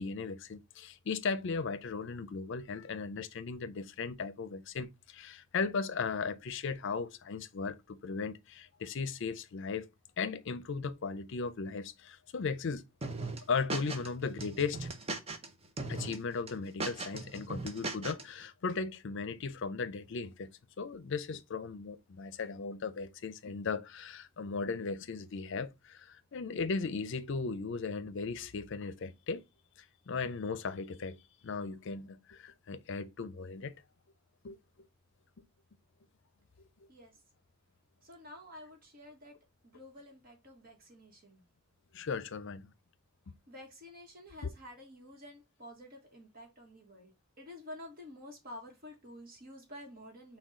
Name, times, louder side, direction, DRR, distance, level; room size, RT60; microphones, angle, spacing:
voice 1, 0.0-9.9 10.2-12.8 13.5-14.9 15.9-29.4 30.1-31.2 31.4-33.7 34.4-34.6 36.6-36.7 41.9-42.7, left 4 dB, 60° left, 0.5 m, -37 dB
sound 1, 13.0-14.1 14.4-15.5 15.8-16.2 16.5-18.2, right 3 dB, 30° right, 0.7 m, -38 dB
voice 2, 38.0-39.4 39.6-41.4 43.5-50.4, left 1 dB, 45° right, 1.2 m, -50 dB
6.1 x 2.3 x 3.7 m
head